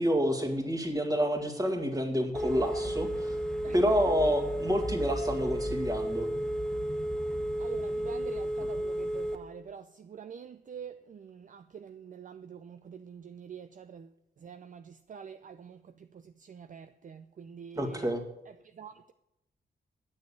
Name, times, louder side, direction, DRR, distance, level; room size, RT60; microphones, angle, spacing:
voice 1, 0.0-3.3 3.7-6.3 17.8-18.2, equal, 20° right, 2.1 m, -28 dB
Telephone, 2.3-9.3, equal, 5° left, 1.0 m, -32 dB
voice 2, 7.6-14.1 14.4-14.8 15.1-15.8 16.5-18.0 18.8-19.1, right 7 dB, 50° right, 0.5 m, -45 dB
9.7 x 6.5 x 8.5 m
cardioid pair, 95°, 18 cm